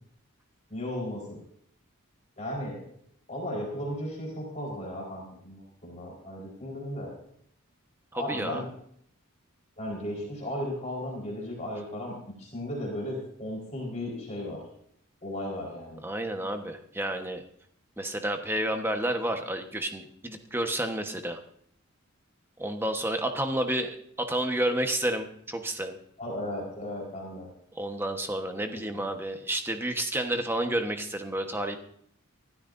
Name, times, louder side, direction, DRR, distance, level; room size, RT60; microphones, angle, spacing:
voice 1, 0.7-1.4 2.4-2.8 3.3-7.1 8.1-8.7 9.8-14.6 15.2-16.0 26.2-27.5 28.5-29.1, left 1 dB, 35° left, -3 dB, 4.4 m, -35 dB
voice 2, 8.1-8.6 16.0-17.4 18.0-21.4 22.6-26.0 27.8-31.8, right 1 dB, 10° right, 5 dB, 1.2 m, -30 dB
26.0 x 13.0 x 2.7 m, 0.67 s
head